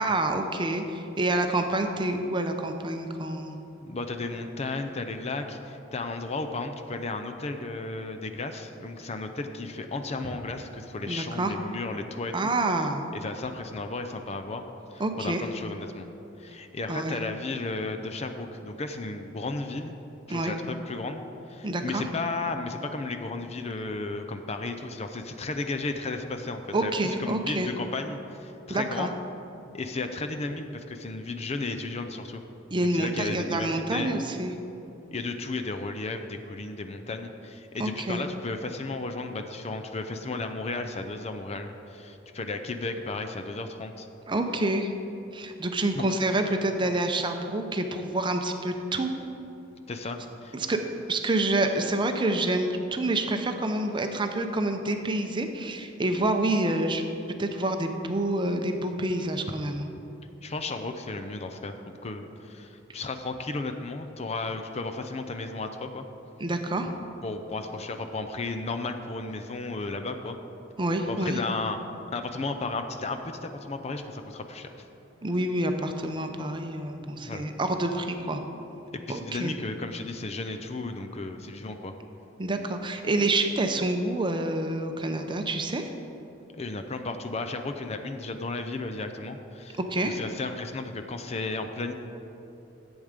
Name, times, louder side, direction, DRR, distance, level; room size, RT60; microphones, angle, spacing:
voice 1, 0.0-3.6 11.1-11.5 12.3-13.0 15.0-15.4 16.9-17.2 20.3-20.5 21.6-22.0 26.7-27.7 28.7-29.1 32.7-34.5 37.8-38.2 44.3-44.9 45.3-49.1 50.5-50.8 51.1-57.0 57.4-59.9 66.4-66.9 70.8-71.4 75.2-78.4 79.1-79.6 82.4-85.9 89.8-90.2, right 2 dB, 25° right, 5 dB, 0.6 m, -27 dB
voice 2, 3.8-12.3 13.1-14.6 14.9-16.1 16.4-19.9 20.3-21.2 21.5-29.1 29.7-32.4 32.8-34.2 35.1-44.1 45.9-46.0 49.9-50.5 60.4-61.8 62.0-66.0 67.2-70.4 71.1-71.8 72.1-74.9 77.0-77.4 78.9-81.9 86.6-91.9, left 3 dB, 35° left, 6 dB, 0.5 m, -34 dB
10.5 x 8.1 x 5.1 m, 2.9 s
head